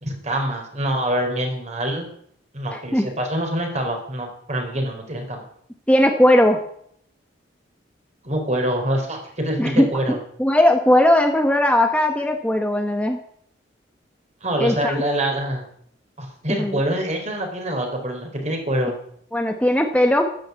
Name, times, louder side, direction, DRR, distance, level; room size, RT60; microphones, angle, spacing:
voice 1, 0.0-2.1 2.5-5.5 8.2-10.2 14.4-15.6 16.2-18.9, right 1 dB, 40° right, 3 dB, 4.2 m, -25 dB
voice 2, 2.7-3.1 5.9-6.6 9.6-13.2 14.6-15.0 16.5-16.8 19.3-20.3, left 1 dB, 5° left, 4 dB, 1.3 m, -18 dB
13.0 x 12.5 x 8.1 m, 0.66 s
head